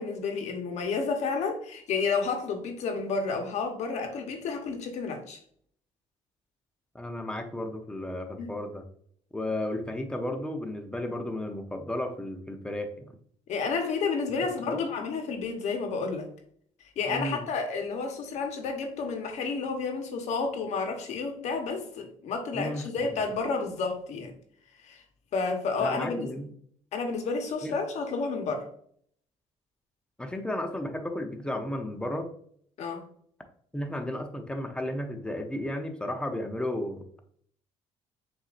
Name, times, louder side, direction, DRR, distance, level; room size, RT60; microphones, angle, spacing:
voice 1, 0.0-5.4 8.4-8.5 13.5-16.3 17.0-24.3 24.8-25.0 25.3-26.3 26.9-28.7 32.8-33.1, left 4 dB, 65° left, 4 dB, 1.1 m, -31 dB
voice 2, 6.9-8.8 9.3-13.1 14.7-14.8 17.1-17.4 22.5-23.1 25.8-26.5 27.6-27.8 30.2-32.3 33.7-37.0, left 1 dB, 5° left, 5 dB, 0.8 m, -33 dB
7.3 x 2.7 x 2.5 m, 0.62 s
cardioid pair, 100°, 12 cm